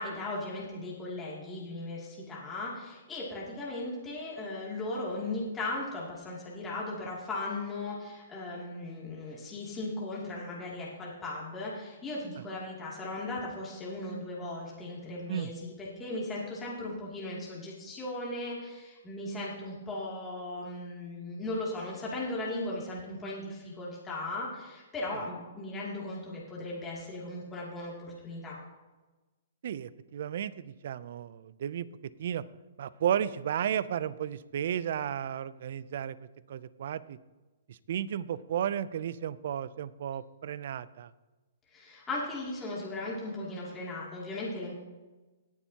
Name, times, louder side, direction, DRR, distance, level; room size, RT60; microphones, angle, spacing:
voice 1, 0.0-28.6 41.7-44.7, left 2 dB, 15° left, -6 dB, 2.6 m, -37 dB
voice 2, 29.6-31.9 32.2-32.4 32.8-36.2 36.5-37.2 37.7-41.1, right 9 dB, 60° right, 18 dB, 0.4 m, -33 dB
19.0 x 7.2 x 2.9 m, 1.2 s
hypercardioid pair, 140°, 0 cm